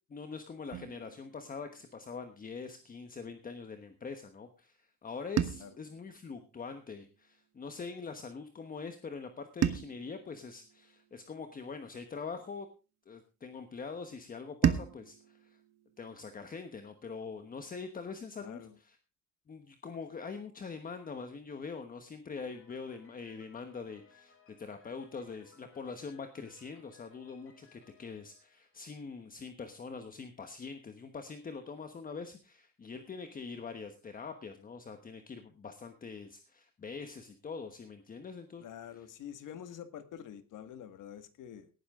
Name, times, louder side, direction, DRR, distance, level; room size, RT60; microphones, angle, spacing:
voice 1, 0.1-12.7 13.1-15.6 16.0-19.0 19.5-38.6, left 5 dB, 25° left, 7 dB, 1.2 m, -44 dB
sound 1, 0.7-2.9 5.4-7.7 9.6-12.1 14.6-17.2, right 9 dB, 55° right, 1.3 m, -37 dB
voice 2, 18.4-18.8 38.6-41.7, left 9 dB, 75° left, 10 dB, 1.8 m, -47 dB
Piano, 22.3-29.2, left 5 dB, 45° left, 5.4 m, -63 dB
18.0 x 10.5 x 3.7 m, 0.32 s
cardioid pair, 160°, 32 cm